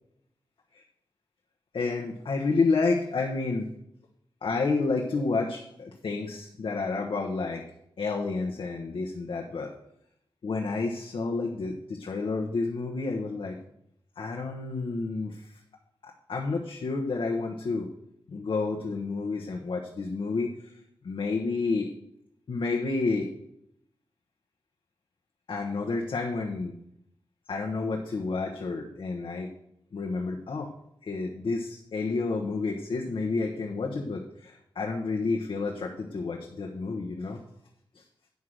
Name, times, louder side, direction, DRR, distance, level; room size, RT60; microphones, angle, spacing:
voice 1, 1.7-3.7 4.4-7.6 8.0-9.7 10.4-13.6 14.2-15.6 16.0-17.9 18.3-20.7 21.0-21.9 22.5-23.3 25.5-26.8 27.5-29.5 29.9-30.7 31.0-37.4 37.9-38.0, left 3 dB, 70° left, 0 dB, 1.1 m, -30 dB
9.5 x 5.6 x 6.4 m, 0.75 s
wide cardioid pair, 130°, 9 cm